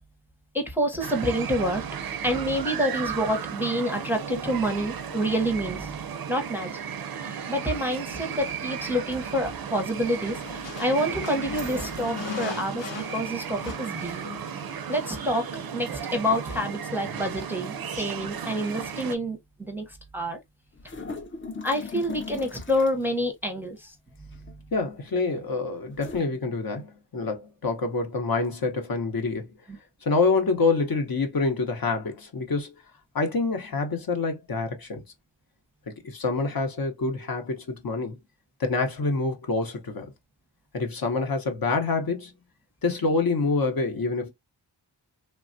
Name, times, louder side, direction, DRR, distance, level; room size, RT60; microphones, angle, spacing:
voice 1, 0.5-1.8 2.2-6.0 6.3-6.8 7.2-10.4 10.8-14.2 14.9-15.4 15.7-20.4 21.6-23.9 29.7-29.8, equal, 5° right, 0.6 m, -28 dB
sound 1, 1.0-19.2, right 7 dB, 55° right, 0.5 m, -35 dB
sound 2, 10.1-15.3, left 5 dB, 90° left, 0.8 m, -39 dB
sound 3, 20.8-23.0 24.3-24.7 25.9-26.2, left 4 dB, 30° left, 0.4 m, -38 dB
voice 2, 24.7-29.5 30.0-32.8 33.1-35.0 35.9-38.2 38.6-40.1 40.7-42.3 42.8-44.3, left 3 dB, 55° left, 0.7 m, -26 dB
3.2 x 2.2 x 2.5 m
wide cardioid pair, 95°, 43 cm